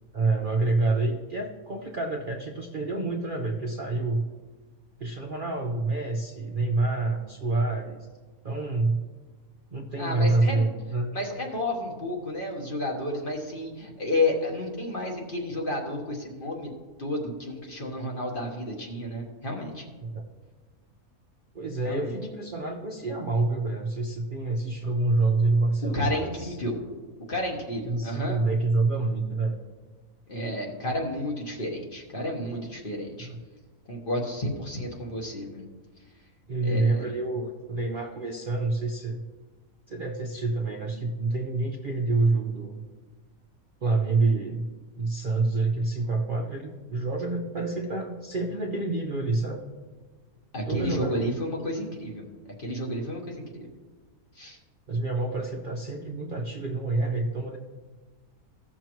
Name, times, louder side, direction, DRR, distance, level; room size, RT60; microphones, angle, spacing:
voice 1, 0.1-4.3 5.0-8.1 8.4-9.0 9.7-11.1 20.0-20.3 21.5-26.6 27.9-29.6 32.4-32.7 33.2-33.4 36.5-39.2 39.9-42.8 43.8-44.7 45.0-49.6 50.7-51.3 54.9-57.6, right 3 dB, 50° right, 1 dB, 0.7 m, -27 dB
voice 2, 10.0-10.7 11.1-16.7 17.0-19.8 21.8-22.2 25.9-26.8 27.3-28.4 30.3-33.3 33.9-35.6 36.6-37.1 50.5-52.2 52.6-53.7 54.3-54.6, left 1 dB, 40° left, 0 dB, 1.4 m, -31 dB
15.5 x 6.3 x 3.0 m, 1.4 s
omnidirectional pair, 1.5 m